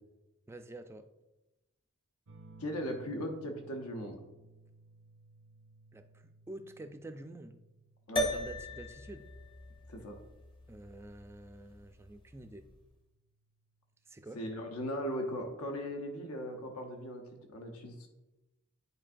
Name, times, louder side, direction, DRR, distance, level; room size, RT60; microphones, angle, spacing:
voice 1, 0.5-1.1 5.9-7.6 8.2-9.3 10.7-12.7 14.1-14.4, right 2 dB, 10° right, 8 dB, 0.3 m, -48 dB
sound 1, 2.3-11.4 12.8-13.4, right 2 dB, 70° right, 0.6 m, -59 dB
voice 2, 2.6-4.2 8.1-8.3 9.9-10.2 14.3-17.2 17.5-18.1, equal, 80° left, 3 dB, 0.9 m, -38 dB
sound 2, 8.2-12.7, equal, 20° left, 0.7 m, -39 dB
9.8 x 4.5 x 2.5 m, 1.0 s
head